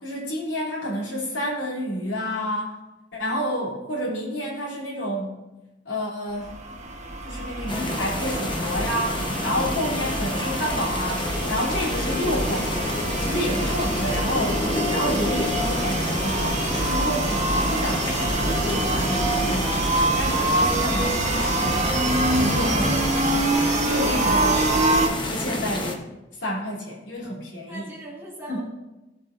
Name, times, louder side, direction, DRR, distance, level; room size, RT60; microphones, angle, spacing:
voice 1, 0.0-2.7 3.1-5.4 5.8-6.5 7.2-21.9 22.3-23.3 23.8-24.9 25.2-26.0 26.4-27.9 28.5-28.6, equal, 70° left, -4 dB, 3.3 m, -29 dB
sound 1, 6.4-25.1, right 2 dB, 40° right, 1.3 m, -26 dB
sound 2, 7.7-26.0, left 1 dB, 25° left, 1.0 m, -29 dB
Thunder, 13.0-23.0, equal, 75° right, 2.3 m, -35 dB
voice 2, 24.1-24.7 27.7-28.6, right 2 dB, 15° right, -6 dB, 2.6 m, -39 dB
16.5 x 7.7 x 2.6 m, 1.0 s
head